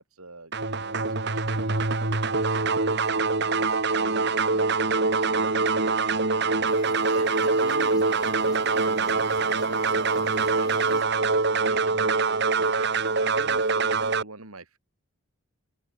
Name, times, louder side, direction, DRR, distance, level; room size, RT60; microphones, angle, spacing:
voice 1, 0.0-1.7 2.0-6.7 7.1-11.1 11.5-14.8, right 2 dB, 85° right, 5.7 m, -43 dB
sound 1, 0.5-14.2, right 4 dB, 50° right, 2.2 m, -24 dB
sound 2, 6.7-11.0, left 2 dB, 20° left, 4.7 m, -46 dB
open air
head